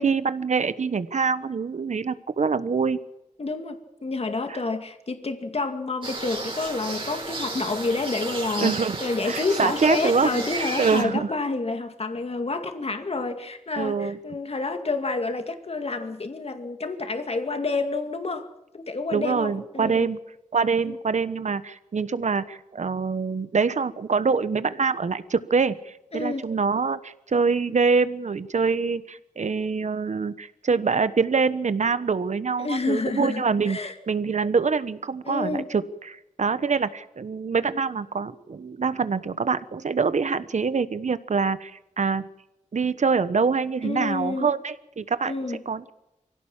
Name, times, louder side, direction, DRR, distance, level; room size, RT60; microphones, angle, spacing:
voice 1, 0.0-3.0 4.5-4.6 8.6-9.0 9.2-11.3 13.8-14.2 19.1-20.2 20.5-33.8 34.1-42.3 42.7-45.9, right 5 dB, 65° right, 14 dB, 1.2 m, -25 dB
voice 2, 3.4-18.5 18.7-20.1 20.9-21.0 26.1-26.5 32.6-33.9 35.2-35.7 43.8-44.5 45.3-45.6, left 3 dB, 50° left, 7 dB, 2.3 m, -29 dB
sound 1, 6.0-11.0, right 2 dB, 40° right, 4.5 m, -33 dB
24.5 x 16.5 x 7.4 m, 0.89 s
wide cardioid pair, 85°, 13 cm